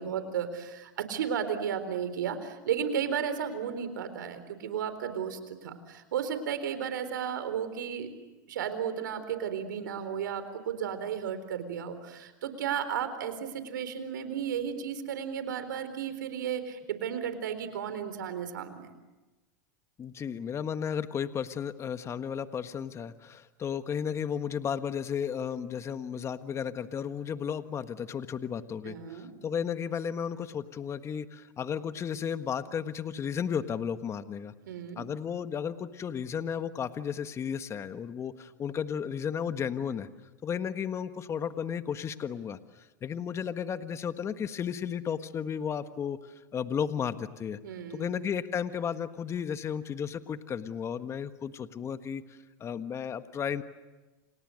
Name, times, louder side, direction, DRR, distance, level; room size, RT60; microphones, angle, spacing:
voice 1, 0.0-8.1 8.5-18.9 28.8-29.3 34.7-35.0 47.6-48.2, right 8 dB, 85° right, 10 dB, 4.1 m, -34 dB
voice 2, 20.0-34.5 35.0-40.1 40.4-47.6 47.9-53.6, left 7 dB, 25° left, 10 dB, 1.4 m, -34 dB
29.5 x 28.0 x 6.5 m, 1.1 s
hypercardioid pair, 110°, 10 cm